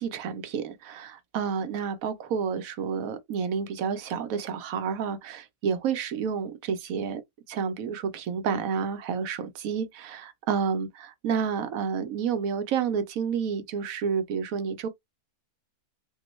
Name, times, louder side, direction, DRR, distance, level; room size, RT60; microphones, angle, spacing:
voice 1, 0.0-7.2 7.5-14.9, right 6 dB, 65° right, 1.0 m, -30 dB
3.7 x 2.2 x 3.0 m
omnidirectional pair, 1.7 m